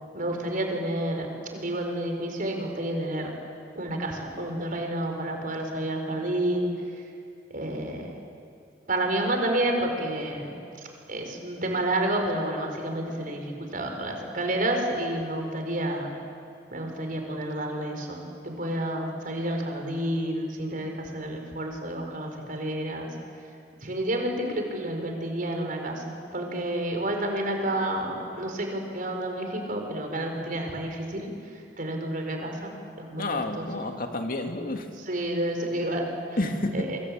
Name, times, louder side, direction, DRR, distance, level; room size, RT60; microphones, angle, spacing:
voice 1, 0.1-1.3 1.5-3.3 3.7-6.7 7.5-8.1 8.9-10.5 10.8-16.1 16.7-23.1 23.8-31.3 31.8-33.6 35.1-36.0 36.7-37.0, right 1 dB, 50° right, 3 dB, 4.9 m, -30 dB
voice 2, 33.2-34.9 36.4-36.9, left 2 dB, 55° left, 5 dB, 2.2 m, -29 dB
28.0 x 24.0 x 8.8 m, 2.5 s
head